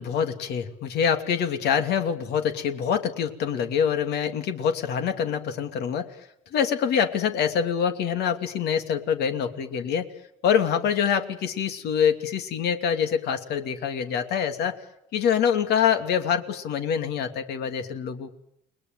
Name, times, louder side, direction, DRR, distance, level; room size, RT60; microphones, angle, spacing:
voice 1, 0.0-6.1 6.5-10.1 10.4-14.8 15.1-18.4, left 7 dB, 75° left, 7 dB, 2.8 m, -25 dB
30.0 x 20.5 x 9.3 m, 0.78 s
cardioid pair, 110°, 17 cm